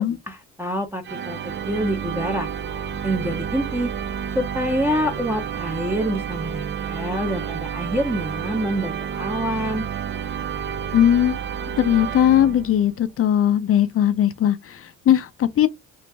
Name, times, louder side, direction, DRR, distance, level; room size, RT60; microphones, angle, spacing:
voice 1, 0.0-2.5 3.0-3.9 4.3-9.9, equal, 10° right, 0.7 m, -26 dB
sound 1, 1.0-13.0, right 8 dB, 40° right, 0.4 m, -30 dB
voice 2, 10.9-11.4 11.8-15.7, left 10 dB, 50° left, 0.5 m, -19 dB
3.0 x 2.5 x 3.3 m
cardioid pair, 90°, 30 cm